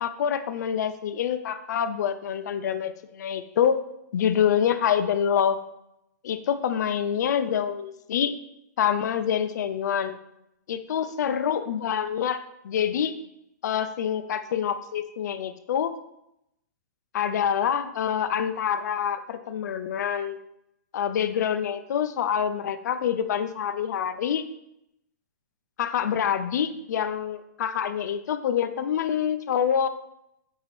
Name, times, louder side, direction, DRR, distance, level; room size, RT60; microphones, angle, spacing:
voice 1, 0.0-3.8 4.1-5.6 6.2-8.3 8.8-10.2 10.7-13.1 13.6-15.9 17.1-20.4 20.9-24.4 25.8-29.9, left 8 dB, 65° left, 11 dB, 0.4 m, -26 dB
4.6 x 2.4 x 3.2 m, 0.80 s
hypercardioid pair, 140°, 10 cm